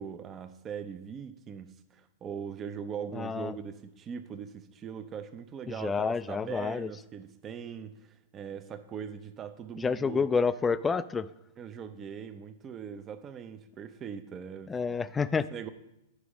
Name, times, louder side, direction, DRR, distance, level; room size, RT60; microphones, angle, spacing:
voice 1, 0.0-10.3 11.6-14.7 15.3-15.7, right 7 dB, 30° right, 10 dB, 0.7 m, -41 dB
voice 2, 3.1-3.6 5.7-6.9 9.8-11.3 14.7-15.5, left 5 dB, 15° left, 16 dB, 0.3 m, -29 dB
9.7 x 5.1 x 4.9 m, 0.87 s
hypercardioid pair, 110°, 0 cm